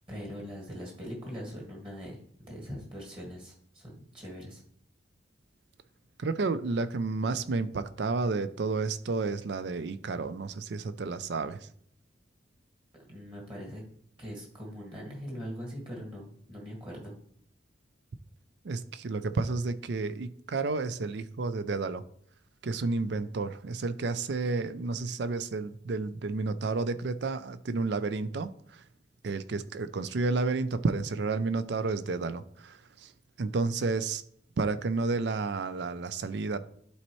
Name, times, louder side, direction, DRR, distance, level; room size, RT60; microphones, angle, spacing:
voice 1, 0.1-4.6 13.1-13.8 14.2-17.1, equal, 25° right, 1.8 m, -41 dB
voice 2, 6.2-11.7 18.6-22.0 22.6-28.8 29.2-33.1 33.4-34.2 34.6-36.6, right 3 dB, 65° right, 0.4 m, -31 dB
11.5 x 4.3 x 3.1 m
head